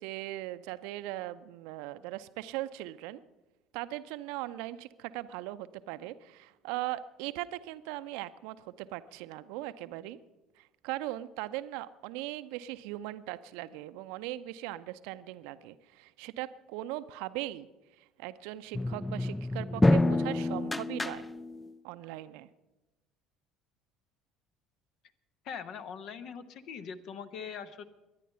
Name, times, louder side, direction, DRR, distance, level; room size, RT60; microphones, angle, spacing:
voice 1, 0.0-3.2 3.7-10.2 10.6-17.7 18.2-21.3 21.8-22.5, right 15 dB, 65° right, 13 dB, 0.6 m, -39 dB
sound 1, 18.7-21.7, left 2 dB, 15° left, 0.4 m, -28 dB
voice 2, 25.4-27.8, left 6 dB, 55° left, 12 dB, 1.0 m, -42 dB
22.5 x 9.9 x 5.6 m, 1.1 s
figure-of-eight pair, 60°, 0 cm